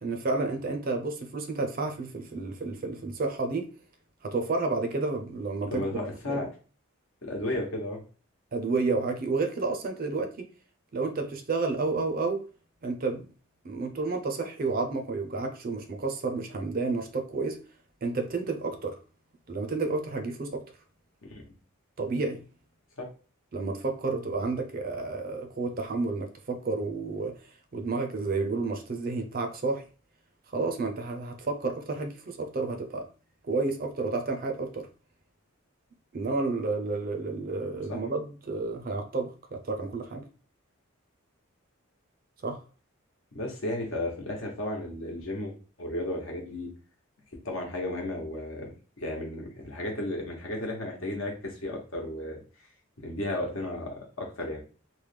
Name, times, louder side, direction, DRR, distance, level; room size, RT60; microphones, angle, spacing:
voice 1, 0.0-3.7 4.2-6.0 6.3-6.5 8.5-10.3 10.9-12.4 12.8-13.3 13.6-17.6 18.0-19.0 19.5-20.6 22.0-22.5 23.5-27.3 27.7-29.8 30.5-33.0 33.5-34.9 36.1-40.2 42.4-42.6, right 3 dB, 40° right, 0.4 m, -30 dB
voice 2, 5.7-6.5 7.2-8.0 21.3-21.4 23.0-23.1 37.9-38.0 43.3-45.5 45.8-46.7 47.4-48.7 49.0-52.4 53.0-54.6, left 1 dB, 70° left, 1.0 m, -33 dB
3.2 x 2.2 x 3.2 m
head